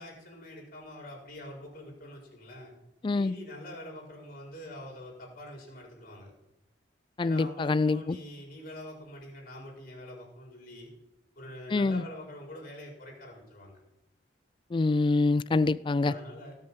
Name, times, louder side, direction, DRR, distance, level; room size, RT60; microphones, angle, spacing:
voice 1, 0.0-2.7 3.1-6.3 7.2-10.9 11.4-13.8 16.0-16.6, left 1 dB, 50° left, 4.6 m, -45 dB
voice 2, 3.0-3.4 7.2-8.2 11.7-12.0 14.7-16.1, left 3 dB, 25° left, 0.3 m, -25 dB
17.5 x 6.5 x 5.5 m
head